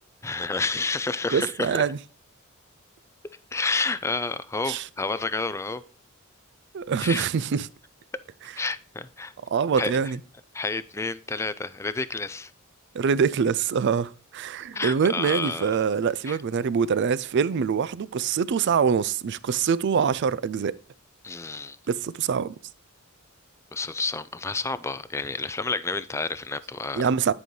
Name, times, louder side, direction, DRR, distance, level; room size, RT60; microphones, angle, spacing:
voice 1, 0.2-1.8 3.5-5.8 7.0-7.3 8.6-9.3 9.8-9.9 10.5-12.5 14.7-15.7 16.3-16.4 21.2-21.8 23.7-27.1, left 3 dB, 15° left, 0.4 m, -30 dB
voice 2, 1.3-2.0 4.7-4.8 6.7-7.7 9.5-10.2 12.9-20.8 21.9-22.5 26.9-27.3, right 6 dB, 55° right, 0.4 m, -24 dB
10.0 x 5.3 x 3.2 m
head